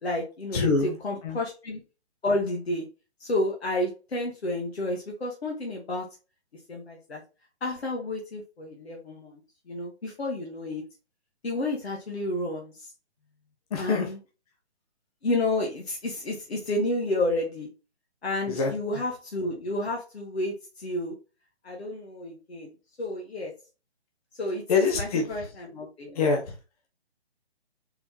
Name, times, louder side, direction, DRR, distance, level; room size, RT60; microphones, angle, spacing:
voice 1, 0.0-1.8 2.2-2.8 3.2-6.1 6.7-7.2 7.6-9.4 9.7-10.8 11.4-12.9 13.8-14.2 15.2-17.7 18.2-21.1 21.6-22.7 23.0-23.5 24.4-24.6 24.9-26.2, left 1 dB, 65° left, 1.3 m, -30 dB
voice 2, 0.5-0.9 1.2-1.4 13.7-14.1 18.5-18.7 24.7-25.2 26.2-26.5, left 4 dB, 35° left, 0.8 m, -24 dB
4.0 x 3.9 x 2.8 m
figure-of-eight pair, 140°, 33 cm